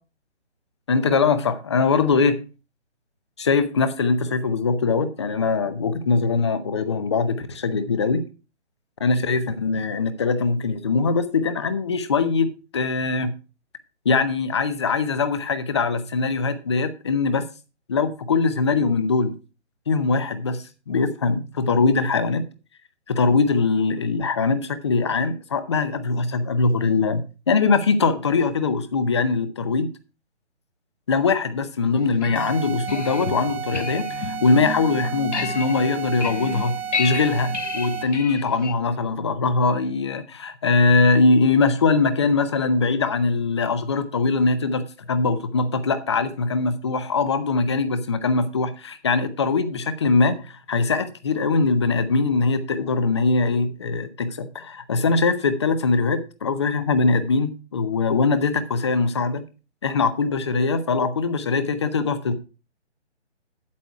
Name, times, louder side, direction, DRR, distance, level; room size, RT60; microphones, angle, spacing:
voice 1, 0.9-2.4 3.4-8.2 9.0-12.5 12.7-13.3 14.0-17.4 17.9-19.3 19.9-22.4 23.1-29.9 31.1-59.4 59.8-62.3, left 4 dB, 25° left, 0.6 m, -22 dB
sound 1, 31.9-38.7, left 5 dB, 85° left, 1.5 m, -32 dB
sound 2, 32.3-38.2, right 8 dB, 60° right, 0.6 m, -33 dB
8.5 x 8.0 x 4.6 m
hypercardioid pair, 160°, 35 cm